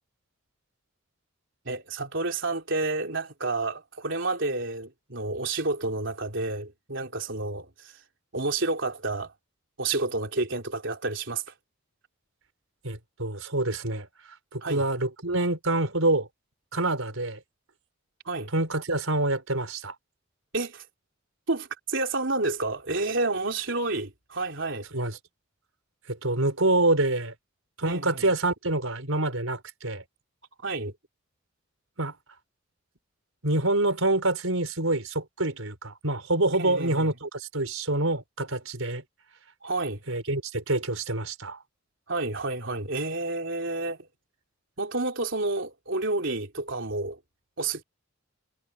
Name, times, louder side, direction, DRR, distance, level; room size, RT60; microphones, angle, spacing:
voice 1, 1.7-8.0 8.3-9.3 9.8-11.5 14.6-14.9 18.3-18.5 20.5-20.9 21.5-24.9 27.8-28.2 30.6-30.9 36.6-37.1 39.6-40.0 42.1-44.1 44.8-47.2 47.6-47.8, right 3 dB, 60° right, 3.8 m, -30 dB
voice 2, 12.8-14.1 14.5-16.3 16.7-17.4 18.5-19.9 24.9-25.2 26.1-27.3 27.8-30.0 32.0-32.1 33.4-39.0 40.1-41.6, right 2 dB, 80° right, 4.7 m, -26 dB
head